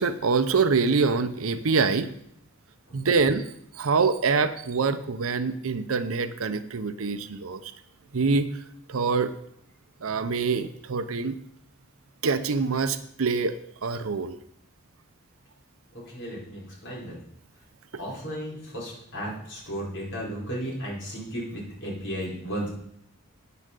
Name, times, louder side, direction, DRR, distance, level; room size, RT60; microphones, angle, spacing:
voice 1, 0.0-2.1 2.9-3.5 3.8-7.7 8.1-8.5 8.9-9.3 10.0-11.4 12.2-14.4, right 4 dB, 80° right, 11 dB, 0.7 m, -25 dB
voice 2, 15.9-17.2 18.0-22.7, equal, 60° left, -4 dB, 4.6 m, -34 dB
9.4 x 6.9 x 6.8 m, 0.72 s
head